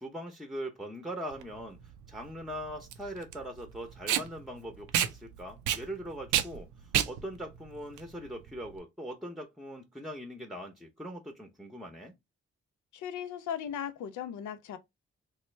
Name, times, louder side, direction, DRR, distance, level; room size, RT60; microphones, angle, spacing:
voice 1, 0.0-1.8 2.1-12.1, equal, ahead, 0.7 m, -41 dB
Packing tape duct tape, 1.3-8.8, right 10 dB, 85° right, 0.5 m, -32 dB
voice 2, 12.9-14.8, left 9 dB, 80° left, 0.4 m, -37 dB
3.0 x 2.0 x 3.2 m
supercardioid pair, 45°, 29 cm